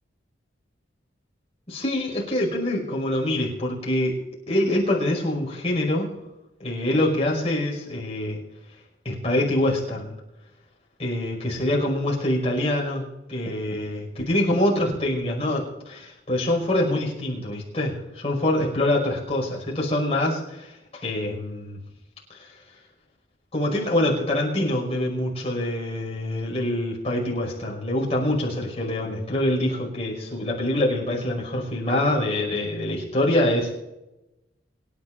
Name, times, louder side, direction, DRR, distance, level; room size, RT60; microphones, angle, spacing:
voice 1, 1.7-4.1 4.5-6.1 6.6-8.4 9.0-10.2 11.0-20.8 21.0-21.8 22.3-22.5 23.5-33.7, left 1 dB, 30° left, -2 dB, 5.5 m, -25 dB
26.5 x 11.0 x 2.6 m, 0.93 s
head